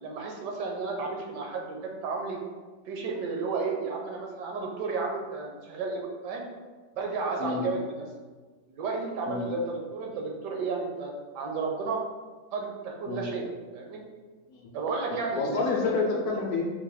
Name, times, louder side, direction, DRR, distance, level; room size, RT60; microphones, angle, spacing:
voice 1, 0.0-2.4 2.9-6.4 7.0-8.1 8.7-12.0 12.5-13.5 13.7-14.0 14.7-15.6, right 4 dB, 70° right, 1 dB, 1.2 m, -32 dB
voice 2, 15.1-16.7, left 3 dB, 65° left, -1 dB, 1.1 m, -29 dB
4.0 x 2.5 x 4.8 m, 1.4 s
omnidirectional pair, 2.1 m